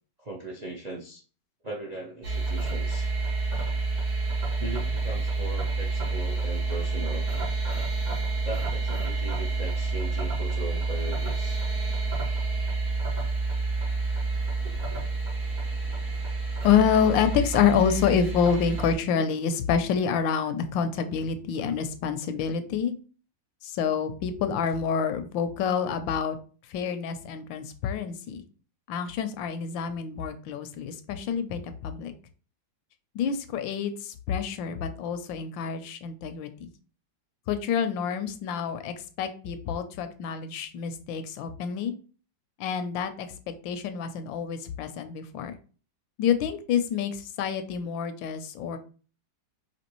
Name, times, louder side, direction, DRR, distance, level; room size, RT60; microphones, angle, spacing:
voice 1, 0.2-1.2 1.6-3.1 4.6-7.3 8.4-11.6, right 1 dB, 70° right, -1 dB, 0.3 m, -38 dB
sound 1, 2.2-18.9, right 3 dB, 85° right, 2.6 m, -29 dB
voice 2, 16.6-22.9 23.6-26.4 26.7-28.4 28.9-32.1 33.1-36.7 37.5-41.9 42.6-45.5 46.2-48.8, left 7 dB, 85° left, 9 dB, 1.3 m, -27 dB
5.1 x 2.9 x 3.0 m, 0.39 s
omnidirectional pair, 2.0 m